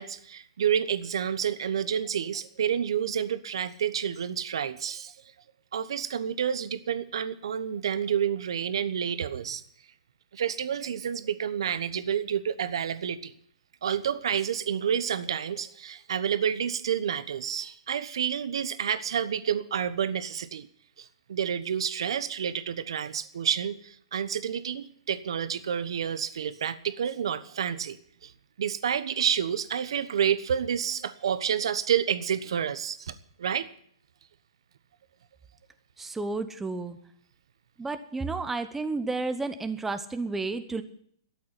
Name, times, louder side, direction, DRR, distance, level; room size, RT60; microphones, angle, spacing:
voice 1, 0.0-5.1 5.7-9.6 10.3-13.3 13.8-20.7 21.0-28.0 28.2-28.3 28.6-33.1 33.4-33.7, right 8 dB, 70° right, 13 dB, 1.1 m, -29 dB
voice 2, 36.0-37.0 37.8-40.8, right 3 dB, 10° right, 9 dB, 0.9 m, -31 dB
13.0 x 8.6 x 9.5 m, 0.63 s
hypercardioid pair, 130°, 3 cm